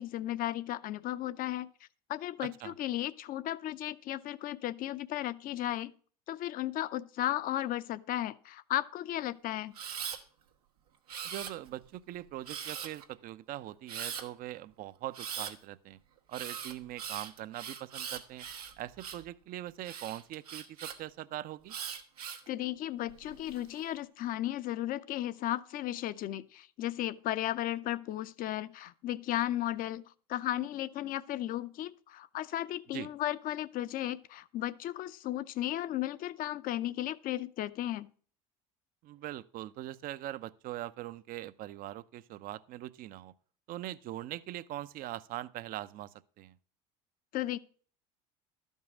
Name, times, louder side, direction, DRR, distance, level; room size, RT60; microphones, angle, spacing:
voice 1, 0.0-1.7 2.1-5.9 6.3-9.7 22.5-38.1 47.3-47.6, left 13 dB, 50° left, 0.7 m, -35 dB
voice 2, 2.4-2.7 11.2-16.0 16.3-18.5 18.8-21.8 32.9-33.1 39.0-43.3 43.7-46.6, right 14 dB, 50° right, 0.6 m, -42 dB
Camera, 9.7-10.2 11.1-11.8 12.5-13.0 13.9-14.2 15.1-15.5 16.3-19.3 19.8-21.0 21.7-22.5 23.1-23.6, right 7 dB, 90° right, 1.3 m, -41 dB
12.5 x 5.5 x 6.1 m
hypercardioid pair, 80°, 19 cm